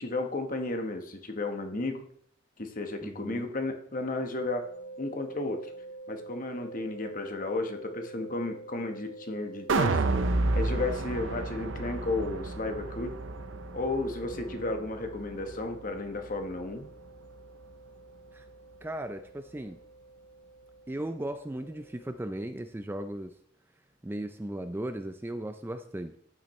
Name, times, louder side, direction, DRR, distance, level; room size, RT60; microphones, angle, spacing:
voice 1, 0.0-2.0 2.6-4.7 5.0-5.7 6.1-10.0 10.5-13.1 13.7-16.9, left 2 dB, 40° left, 5 dB, 1.1 m, -33 dB
voice 2, 3.0-3.5 14.5-14.7 18.3-18.5 18.8-19.8 20.9-23.4 24.0-26.2, right 1 dB, 10° right, 8 dB, 0.3 m, -37 dB
sound 1, 4.3-22.1, right 2 dB, 75° left, 2.2 m, -48 dB
sound 2, 9.7-15.9 16.3-16.4, right 3 dB, 65° right, 0.6 m, -31 dB
12.5 x 9.1 x 3.1 m, 0.66 s
head